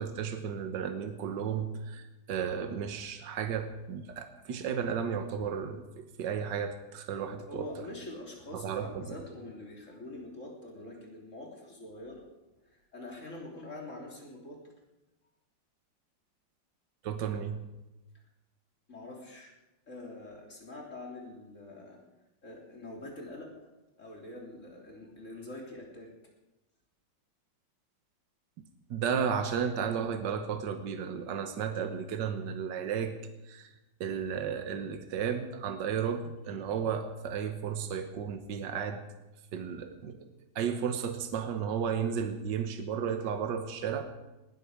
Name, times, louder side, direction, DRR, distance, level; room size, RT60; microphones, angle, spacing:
voice 1, 0.0-7.7 8.5-9.2 17.0-17.6 28.9-33.1 33.5-33.7 34.0-39.0 39.5-40.2 40.6-44.1, right 7 dB, 70° right, 8 dB, 1.7 m, -33 dB
voice 2, 7.5-12.2 12.6-14.6 18.9-19.5 19.9-22.0 22.4-23.7 24.0-26.1, left 2 dB, 40° left, 0 dB, 3.6 m, -45 dB
19.5 x 13.0 x 4.9 m, 1.0 s
omnidirectional pair, 2.0 m